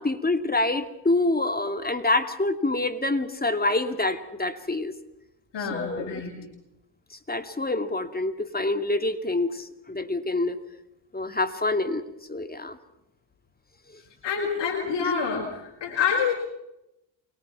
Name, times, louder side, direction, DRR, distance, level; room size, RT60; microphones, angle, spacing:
voice 1, 0.0-4.9 5.6-6.2 7.1-10.6 11.1-12.0 12.3-12.8, left 2 dB, 20° left, 9 dB, 2.6 m, -26 dB
voice 2, 5.5-6.3 14.2-16.3, left 6 dB, 65° left, -1 dB, 5.5 m, -27 dB
28.5 x 22.0 x 6.0 m, 0.86 s
cardioid pair, 75°, 44 cm